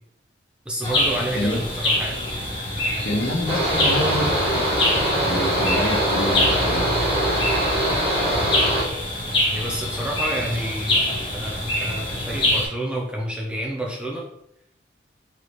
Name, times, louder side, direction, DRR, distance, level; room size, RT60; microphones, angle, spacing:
voice 1, 0.7-2.2 9.5-11.0 11.3-14.3, right 1 dB, 5° right, -2 dB, 0.7 m, -29 dB
sound 1, 0.8-12.6, left 1 dB, 25° left, 1.4 m, -25 dB
voice 2, 3.0-4.6 5.2-6.9, left 1 dB, 75° left, -1 dB, 1.2 m, -27 dB
Mechanical fan, 3.5-8.8, equal, 30° right, 1.5 m, -22 dB
sound 2, 3.8-9.2, right 5 dB, 75° right, 0.4 m, -36 dB
4.8 x 3.3 x 3.1 m, 0.76 s
head